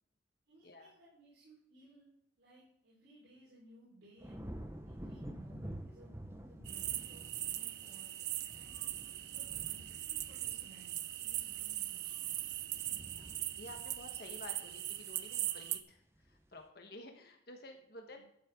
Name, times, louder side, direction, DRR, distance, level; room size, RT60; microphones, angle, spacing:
voice 1, 0.5-2.1 2.4-4.5 4.8-8.1 8.5-8.9 9.3-12.6 12.8-13.1 18.1-18.2, right 1 dB, 75° right, -8 dB, 4.7 m, -61 dB
sound 1, 4.2-15.5 15.9-16.4, right 1 dB, 15° right, 0.8 m, -50 dB
sound 2, 6.7-15.8, right 14 dB, 60° right, 0.6 m, -40 dB
voice 2, 13.5-18.2, left 2 dB, 55° left, 4 dB, 1.3 m, -52 dB
12.5 x 7.5 x 3.7 m, 0.74 s
head